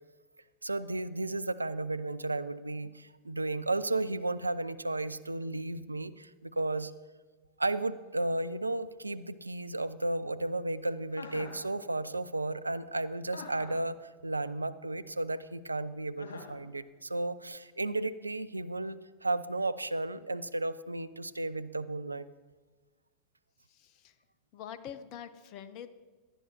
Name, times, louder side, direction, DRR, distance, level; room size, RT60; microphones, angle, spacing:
voice 1, 0.6-6.9 7.6-22.3, right 2 dB, 80° right, 14 dB, 0.4 m, -34 dB
Chuckle chortle, 11.1-11.6 13.3-13.9 16.2-16.6, left 5 dB, 65° left, 2.4 m, -44 dB
voice 2, 23.7-24.2 24.5-25.9, left 9 dB, 40° left, 13 dB, 0.7 m, -45 dB
18.0 x 11.5 x 3.0 m, 1.3 s
figure-of-eight pair, 90°, 0 cm